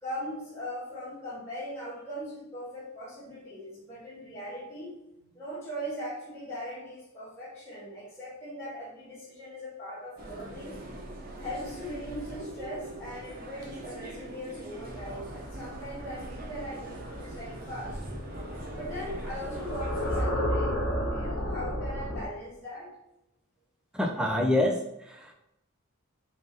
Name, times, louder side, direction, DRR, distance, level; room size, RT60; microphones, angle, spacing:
voice 1, 0.0-10.7 11.4-18.0 18.7-22.9, equal, 10° left, -9 dB, 1.3 m, -40 dB
sound 1, 10.2-20.2, right 1 dB, 45° right, 0.7 m, -42 dB
sound 2, 14.9-22.3, equal, 65° left, 0.8 m, -33 dB
voice 2, 23.9-25.3, left 1 dB, 5° right, 1 dB, 0.4 m, -27 dB
4.0 x 2.5 x 3.8 m, 0.84 s
head